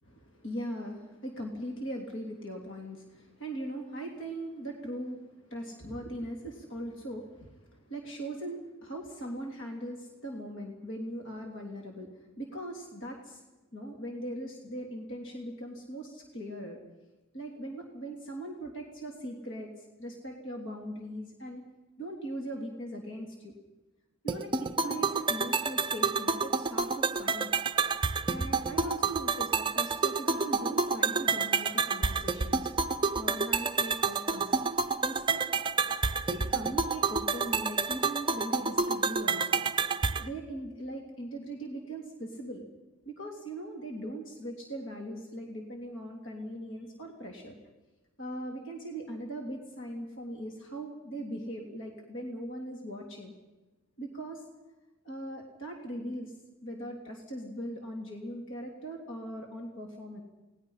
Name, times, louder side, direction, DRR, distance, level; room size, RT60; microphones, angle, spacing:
voice 1, 0.0-13.4 13.7-16.8 17.3-21.6 22.0-23.5 24.2-27.5 28.3-32.7 33.1-34.6 35.0-35.5 36.3-39.6 40.2-42.6 43.0-47.6 48.2-53.3 54.0-54.4 55.0-56.3 56.6-60.2, right 1 dB, 55° left, 1 dB, 3.1 m, -40 dB
sound 1, 24.3-40.3, right 4 dB, 20° right, 0.6 m, -29 dB
29.0 x 19.5 x 5.7 m, 1.1 s
head